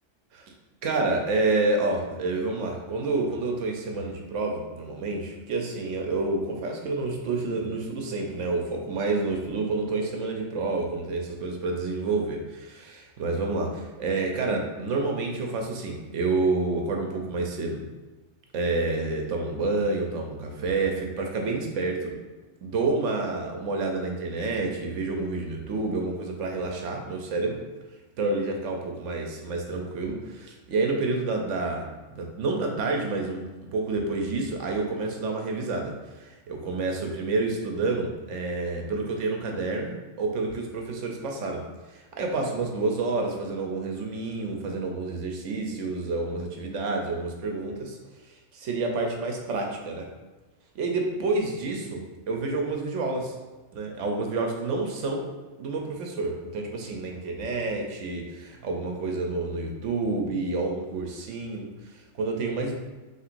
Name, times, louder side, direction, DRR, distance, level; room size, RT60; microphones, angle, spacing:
voice 1, 0.8-17.8 18.5-22.1 22.6-27.6 28.2-33.4 33.7-48.0 48.3-50.1 50.7-53.3 53.7-55.3 55.6-62.8, right 3 dB, 80° right, 2 dB, 1.0 m, -29 dB
5.6 x 3.1 x 2.5 m, 1.2 s
omnidirectional pair, 1.2 m